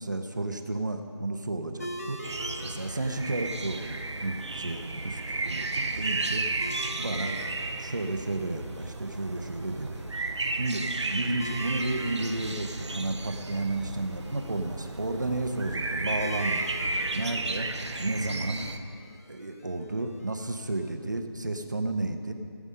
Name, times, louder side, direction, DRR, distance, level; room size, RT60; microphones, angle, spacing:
voice 1, 0.0-2.2 2.6-6.4 6.9-7.4 7.8-10.0 10.5-16.7 17.1-17.7 18.0-18.6 19.3-22.3, right 2 dB, 45° right, 6 dB, 0.8 m, -32 dB
sound 1, 1.8-20.9, equal, 35° left, 0.6 m, -46 dB
sound 2, 2.2-18.8, right 2 dB, 80° right, 0.9 m, -33 dB
16.5 x 7.2 x 5.4 m, 2.3 s
figure-of-eight pair, 180°, 14 cm